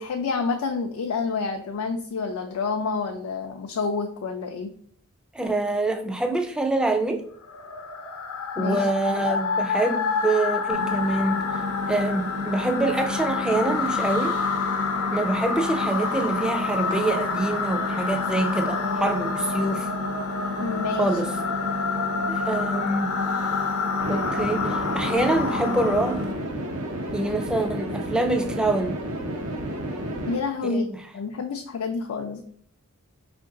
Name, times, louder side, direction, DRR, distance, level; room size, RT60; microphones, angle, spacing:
voice 1, 0.0-4.7 8.6-9.4 20.6-21.1 30.3-30.9 31.1-32.4, left 4 dB, 75° left, 4 dB, 0.4 m, -28 dB
voice 2, 5.3-7.2 8.6-11.4 11.9-14.4 15.1-19.9 21.0-21.3 22.3-23.1 24.1-26.2 27.1-29.0 30.6-31.0, right 2 dB, 5° right, 5 dB, 0.3 m, -25 dB
sound 1, 7.4-26.3, left 5 dB, 90° left, 0.8 m, -28 dB
Engine, 10.7-26.3, left 2 dB, 50° right, 0.7 m, -32 dB
sound 2, 24.0-30.4, right 1 dB, 90° right, 0.9 m, -31 dB
4.4 x 2.6 x 3.7 m, 0.65 s
head